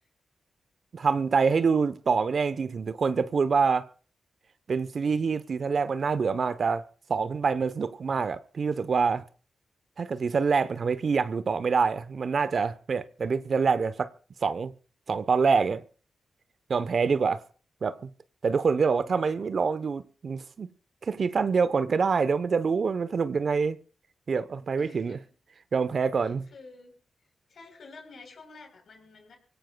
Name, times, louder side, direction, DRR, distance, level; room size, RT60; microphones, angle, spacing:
voice 1, 0.9-3.9 4.7-6.8 7.1-9.2 10.0-14.1 14.4-14.7 15.1-15.8 16.7-17.4 17.8-18.1 18.4-20.7 21.0-23.8 24.3-25.2 25.7-26.5, right 5 dB, 60° right, 0.9 m, -26 dB
voice 2, 18.8-19.5 24.8-25.2 26.2-27.0 27.5-29.4, left 3 dB, 70° left, 4.0 m, -50 dB
24.5 x 17.0 x 2.3 m
supercardioid pair, 40°, 0 cm